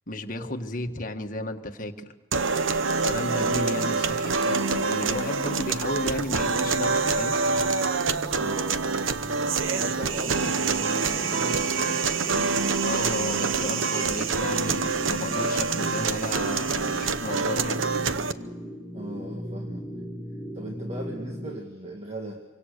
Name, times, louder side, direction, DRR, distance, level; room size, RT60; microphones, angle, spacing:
voice 1, 0.1-2.1 3.0-7.4 12.8-17.8, left 1 dB, 45° left, 5 dB, 1.6 m, -33 dB
sound 1, 2.3-18.3, right 4 dB, 85° right, 0.9 m, -26 dB
sound 2, 6.1-21.6, equal, ahead, 1.7 m, -39 dB
voice 2, 8.3-9.2 9.6-12.3 18.9-19.9 20.5-22.4, equal, 30° right, 1 dB, 2.0 m, -38 dB
26.5 x 24.5 x 6.7 m, 1.2 s
head